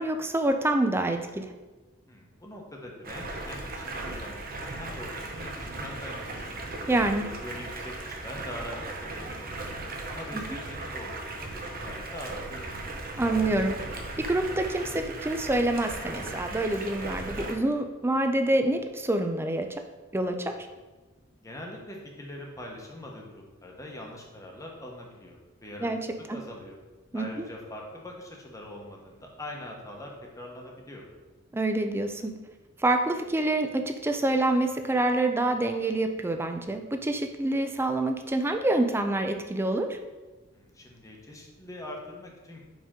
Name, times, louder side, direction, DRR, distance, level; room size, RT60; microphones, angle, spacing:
voice 1, 0.0-1.5 6.9-7.3 10.3-10.4 13.2-13.8 14.3-19.7 20.1-20.5 25.8-26.0 26.3-26.4 27.1-27.3 31.5-32.3 32.8-40.0, right 2 dB, 10° right, 6 dB, 0.4 m, -26 dB
voice 2, 2.1-6.6 7.2-12.7 20.5-20.6 21.4-26.8 27.1-31.0 40.5-42.6, left 1 dB, 15° left, 0 dB, 1.0 m, -43 dB
Stream, 3.0-17.5, right 2 dB, 50° right, 0.7 m, -37 dB
5.3 x 5.1 x 3.7 m, 1.2 s
head